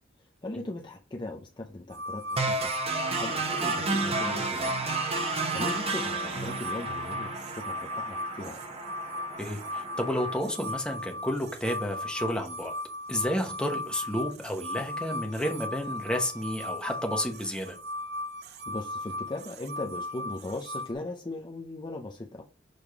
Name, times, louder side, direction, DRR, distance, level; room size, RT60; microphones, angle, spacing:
voice 1, 0.4-4.8 5.3-8.7 18.7-22.4, left 2 dB, 25° left, 0.6 m, -39 dB
sound 1, 1.9-20.9, left 1 dB, 55° right, 0.6 m, -37 dB
sound 2, 2.4-10.4, right 3 dB, 30° right, 1.0 m, -32 dB
voice 2, 9.4-12.7 13.1-17.7, equal, 5° left, 1.1 m, -31 dB
6.7 x 3.6 x 4.7 m
head